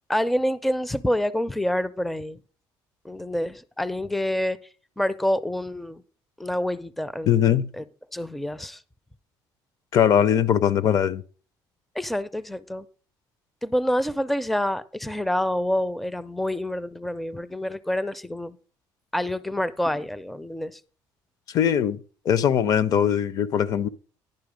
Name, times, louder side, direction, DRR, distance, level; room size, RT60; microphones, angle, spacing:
voice 1, 0.1-2.4 3.0-4.6 5.0-6.0 6.4-7.8 8.1-8.8 12.0-12.8 13.6-18.6 19.1-20.8, left 1 dB, ahead, 0.4 m, -27 dB
voice 2, 7.2-7.7 9.9-11.2 21.5-23.9, left 9 dB, 50° left, 0.5 m, -21 dB
10.5 x 5.5 x 5.0 m
cardioid pair, 125°, 8 cm